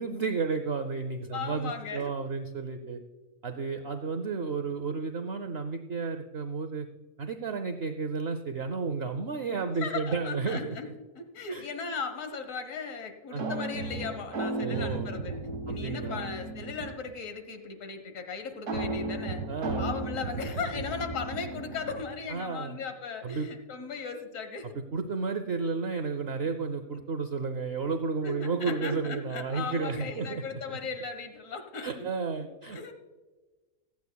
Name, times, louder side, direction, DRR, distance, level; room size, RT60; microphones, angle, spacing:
voice 1, 0.0-3.0 3.4-6.9 7.2-10.9 11.5-11.6 13.3-13.6 14.6-15.1 15.7-16.3 19.5-19.9 22.3-22.8 23.2-23.5 24.7-30.8 31.8-32.8, right 4 dB, 55° right, 7 dB, 0.8 m, -32 dB
voice 2, 1.3-2.1 9.8-10.9 11.1-15.4 15.6-19.4 19.8-24.7 28.2-32.1 32.4-32.9, left 5 dB, 60° left, 7 dB, 1.6 m, -37 dB
sound 1, 13.4-17.1 18.7-22.3, right 2 dB, 85° right, 2.3 m, -35 dB
25.0 x 8.4 x 2.3 m, 1.2 s
omnidirectional pair, 1.6 m